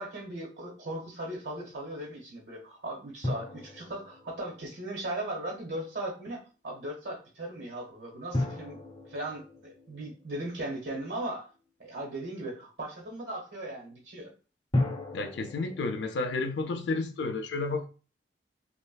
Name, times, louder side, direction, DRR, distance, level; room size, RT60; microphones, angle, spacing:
voice 1, 0.0-8.8 9.0-11.5 11.8-14.3, right 1 dB, 80° right, 1.2 m, -38 dB
sound 1, 3.2-5.5 8.3-11.3 14.7-16.6, left 1 dB, 25° left, 0.6 m, -35 dB
voice 2, 15.1-17.9, left 3 dB, 75° left, 0.4 m, -31 dB
3.2 x 2.4 x 2.2 m
head